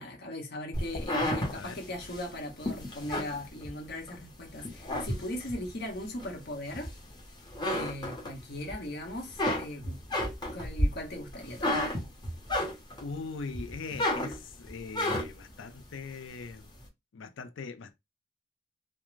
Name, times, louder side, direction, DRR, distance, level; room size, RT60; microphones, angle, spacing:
voice 1, 0.0-6.9 7.7-10.0 10.5-11.9, left 1 dB, 55° left, 0.9 m, -39 dB
sound 1, 0.7-4.2 4.6-5.7 6.2-7.2 7.5-8.7 9.1-13.1 13.5-15.5, left 1 dB, 20° left, 0.8 m, -32 dB
voice 2, 13.0-16.7 17.1-18.0, left 4 dB, 75° left, 0.5 m, -41 dB
2.5 x 2.1 x 3.1 m
head